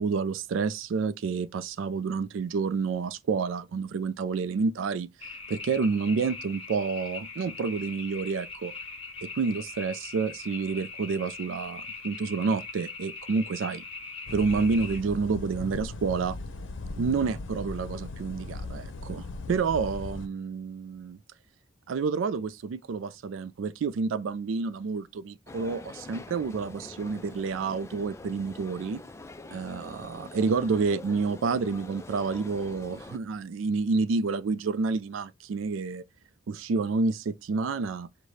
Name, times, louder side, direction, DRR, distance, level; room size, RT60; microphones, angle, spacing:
voice 1, 0.0-5.1 5.5-8.7 9.2-13.8 14.3-16.4 17.0-21.2 21.9-29.0 29.5-36.0 36.5-38.1, right 4 dB, 80° right, 0.4 m, -29 dB
sound 1, 5.2-15.0, left 4 dB, 30° left, 0.9 m, -41 dB
sound 2, 14.3-20.3, left 3 dB, 75° left, 0.6 m, -38 dB
sound 3, 25.5-33.2, left 2 dB, 15° left, 0.3 m, -45 dB
4.8 x 2.2 x 4.0 m
head